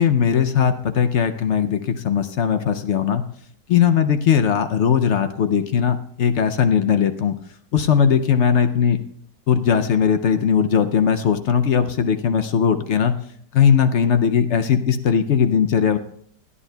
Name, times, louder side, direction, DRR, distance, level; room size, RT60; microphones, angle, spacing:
voice 1, 0.0-3.2 3.7-7.3 7.7-9.0 9.5-13.1 13.5-16.0, left 7 dB, 70° left, 8 dB, 0.7 m, -19 dB
28.5 x 9.8 x 2.2 m, 0.66 s
omnidirectional pair, 1.8 m